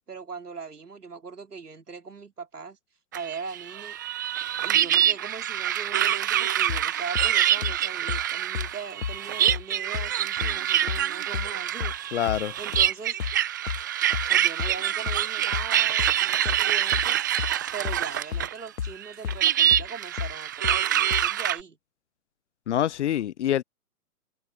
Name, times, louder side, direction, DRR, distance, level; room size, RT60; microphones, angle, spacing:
voice 1, 0.1-2.8 3.1-4.0 4.6-11.9 12.6-13.2 14.2-17.2 17.7-21.8, right 5 dB, 85° right, 3.8 m, -40 dB
sound 1, 3.1-18.6 18.8-21.6, right 11 dB, 15° right, 0.4 m, -25 dB
sound 2, 6.7-7.3 7.6-7.8 8.1-8.2 8.5-8.7 9.0-9.2 9.5-9.6 9.9-10.1 10.4-11.0 11.3-11.5 11.8-12.0 12.3-12.4 12.7-12.9 13.2-13.4 13.7-13.8 14.1-14.8 15.1-15.2 15.5-15.7 16.0-16.2 16.4-16.6 16.9-17.1 17.4-17.5 17.8-18.5 18.8-18.9 19.2-19.4 19.7-19.9 20.2-20.3 20.6-20.8 21.1-21.3, left 7 dB, 75° left, 1.4 m, -31 dB
voice 2, 12.1-12.6 22.7-23.6, left 11 dB, 50° left, 0.5 m, -25 dB
hypercardioid pair, 135°, 45 cm